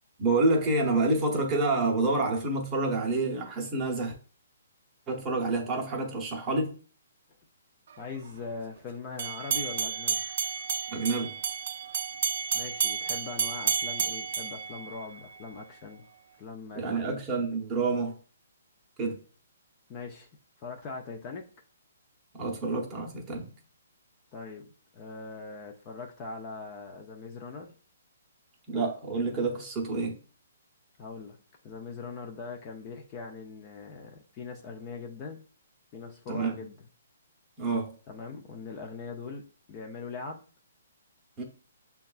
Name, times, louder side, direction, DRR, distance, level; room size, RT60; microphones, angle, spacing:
voice 1, 0.2-4.1 5.1-6.7 10.9-11.4 16.7-18.2 19.0-19.2 22.3-23.5 28.7-30.2 36.3-36.5 37.6-37.9 41.4-41.5, right 3 dB, 15° right, 0.8 m, -28 dB
voice 2, 8.0-10.2 12.5-16.0 16.4-17.1 19.9-20.3 20.6-21.4 24.3-24.7 24.9-27.7 31.0-31.4 31.6-35.4 35.9-36.9 38.1-39.4 39.7-40.4, left 4 dB, 25° left, 0.4 m, -41 dB
sound 1, 9.2-15.4, right 7 dB, 55° right, 0.3 m, -31 dB
6.4 x 2.3 x 2.4 m
hypercardioid pair, 165°, 0 cm